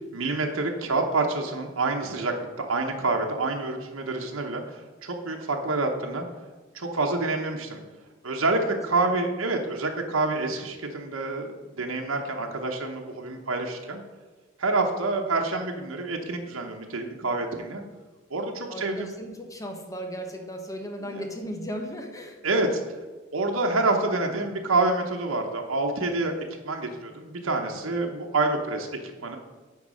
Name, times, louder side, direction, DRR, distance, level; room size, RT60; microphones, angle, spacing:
voice 1, 0.1-6.2 6.7-7.8 8.2-14.0 14.6-17.8 18.3-19.1 21.0-21.2 22.4-22.8 23.3-26.4 26.6-29.4, right 3 dB, 90° right, 2 dB, 1.0 m, -27 dB
voice 2, 18.7-22.4, equal, 15° left, 4 dB, 1.1 m, -36 dB
9.4 x 4.0 x 6.3 m, 1.3 s
head